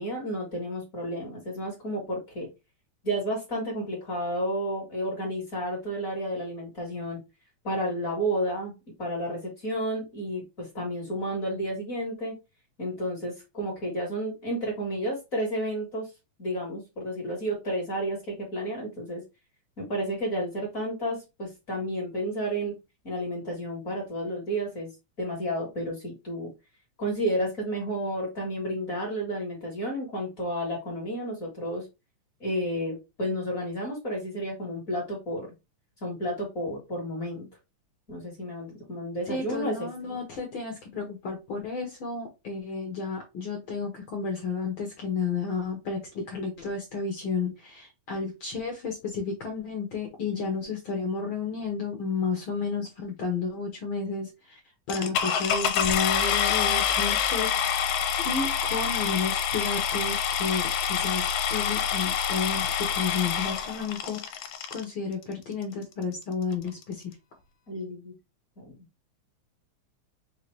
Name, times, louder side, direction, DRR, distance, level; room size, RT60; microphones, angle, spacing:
voice 1, 0.0-2.5 3.0-7.2 7.6-8.7 9.0-12.4 12.8-16.1 16.4-19.2 19.8-22.7 23.0-24.9 25.2-26.5 27.0-31.8 32.4-35.5 36.0-37.5 38.1-39.9 50.3-50.6 67.7-68.1 68.6-68.7, equal, 35° left, -2 dB, 1.4 m, -31 dB
voice 2, 39.3-54.6 54.9-67.2, left 5 dB, 65° left, 1 dB, 1.3 m, -32 dB
sound 1, 54.9-64.8 65.6-65.7 66.2-66.3 66.5-66.8, left 8 dB, 80° left, 1.9 m, -27 dB
5.1 x 2.8 x 3.1 m, 0.24 s
omnidirectional pair, 3.4 m